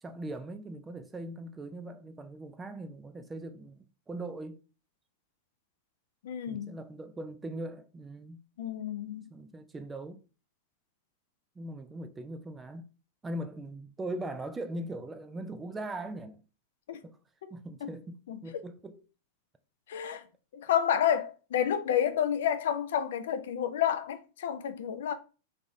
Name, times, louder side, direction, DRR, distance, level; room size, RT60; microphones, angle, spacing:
voice 1, 0.0-4.6 6.5-8.4 9.3-10.2 11.6-12.9 13.2-16.4 17.0-17.2 17.5-19.0, right 1 dB, 15° right, 0.4 m, -40 dB
voice 2, 6.2-6.8 8.6-9.3 16.9-17.0 17.8-17.9 18.3-18.4 19.9-20.2 20.5-25.1, left 9 dB, 60° left, 0.4 m, -30 dB
3.5 x 3.4 x 2.6 m
figure-of-eight pair, 90°, 0 cm